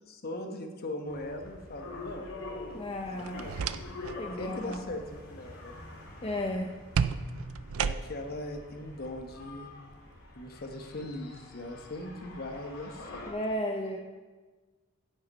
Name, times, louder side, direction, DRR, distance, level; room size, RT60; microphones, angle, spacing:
voice 1, 0.1-2.4 3.2-3.7 4.4-5.7 7.8-9.7 10.3-13.3, left 1 dB, 50° left, 4 dB, 1.1 m, -40 dB
sound 1, 1.1-13.3, left 2 dB, 85° left, 2.3 m, -46 dB
voice 2, 2.7-3.5 4.1-4.8 6.2-6.7 13.3-14.0, left 1 dB, 25° left, 1 dB, 0.7 m, -34 dB
sound 2, 3.2-4.2 4.5-4.9 6.9-8.4, right 6 dB, 75° right, 0.4 m, -32 dB
9.2 x 7.8 x 5.4 m, 1.3 s
head